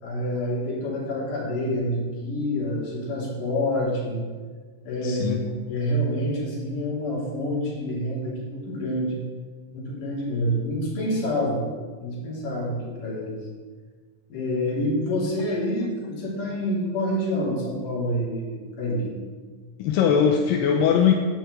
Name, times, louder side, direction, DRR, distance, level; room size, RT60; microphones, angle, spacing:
voice 1, 0.0-4.3 4.8-5.4 5.7-9.2 9.7-11.7 12.0-13.3 14.3-19.1, equal, 70° left, -4 dB, 4.4 m, -27 dB
voice 2, 5.0-5.4 19.8-21.1, left 7 dB, 85° left, 2 dB, 2.5 m, -20 dB
10.5 x 5.7 x 8.0 m, 1.5 s
omnidirectional pair, 3.9 m